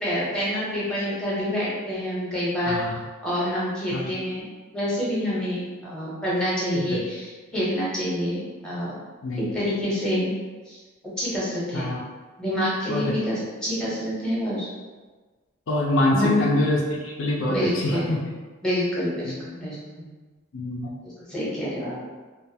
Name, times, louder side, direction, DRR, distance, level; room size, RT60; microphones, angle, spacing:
voice 1, 0.0-2.8 3.2-4.5 4.7-7.3 7.5-9.0 9.4-10.3 10.7-10.8 11.2-11.8 12.4-14.7 16.1-16.4 17.5-18.1 18.6-20.1 21.0-22.0, equal, 5° left, -8 dB, 0.7 m, -27 dB
voice 2, 2.7-3.0 3.9-4.1 6.7-7.0 9.2-9.5 11.7-12.0 12.9-13.1 15.7-18.2 19.2-19.4 20.5-20.9, left 1 dB, 65° left, -3 dB, 0.4 m, -25 dB
2.5 x 2.2 x 2.6 m, 1.3 s
head